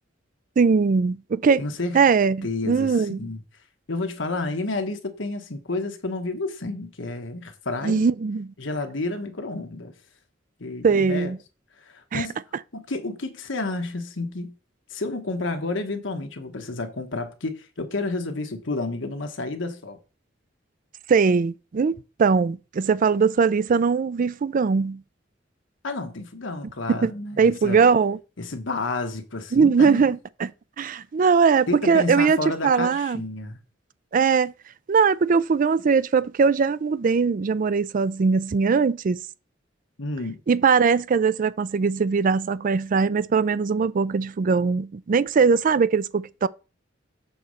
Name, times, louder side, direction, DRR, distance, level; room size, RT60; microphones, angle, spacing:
voice 1, 0.6-1.6 1.9-3.2 7.8-8.5 10.8-11.4 12.1-12.3 21.1-25.0 26.9-27.1 27.4-28.2 29.5-30.5 30.8-32.4 32.6-33.2 34.1-34.5 34.9-39.2 40.5-46.5, right 5 dB, 45° right, 0.4 m, -20 dB
voice 2, 1.6-2.0 2.4-3.4 3.9-8.1 8.6-9.9 10.6-11.3 11.8-12.4 12.7-14.5 14.9-20.0 25.8-27.8 28.4-30.1 31.7-33.6 40.0-40.4, left 2 dB, 85° left, 1.3 m, -30 dB
6.9 x 4.1 x 6.4 m
head